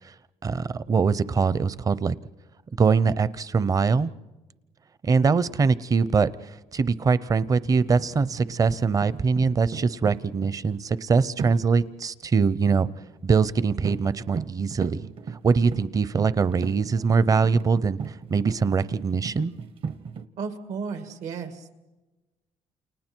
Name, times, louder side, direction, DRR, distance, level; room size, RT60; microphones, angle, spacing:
voice 1, 0.4-2.1 2.8-4.1 5.0-12.9 13.2-15.1 15.4-18.0 18.3-19.5, right 5 dB, 30° right, 17 dB, 0.7 m, -23 dB
sound 1, 7.7-10.6 11.4-11.7 12.7-13.1 13.5-13.6 13.8-14.1 14.4-20.2, right 6 dB, 50° right, 1.1 m, -37 dB
voice 2, 20.4-21.8, right 5 dB, 80° right, 7 dB, 2.4 m, -34 dB
29.0 x 28.5 x 4.6 m, 1.1 s
cardioid pair, 120°, 12 cm